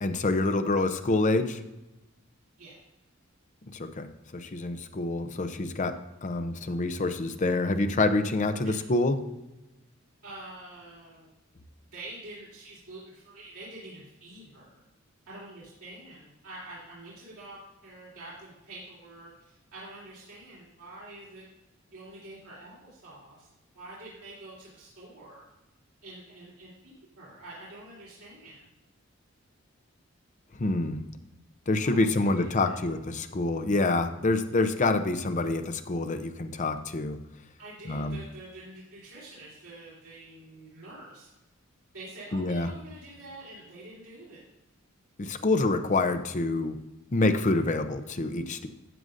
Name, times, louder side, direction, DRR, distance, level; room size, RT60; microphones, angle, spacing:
voice 1, 0.0-1.6 3.7-4.1 4.3-9.2 30.6-31.0 31.7-37.2 37.9-38.2 42.3-42.7 45.2-46.8 47.1-48.7, left 2 dB, 35° left, 9 dB, 0.6 m, -27 dB
voice 2, 10.2-11.3 11.9-14.8 15.3-21.5 21.9-23.5 23.7-25.4 26.0-28.7 31.8-32.9 37.6-41.3 41.9-44.4, right 2 dB, 80° right, -9 dB, 3.5 m, -46 dB
12.5 x 7.8 x 2.6 m, 1.0 s
head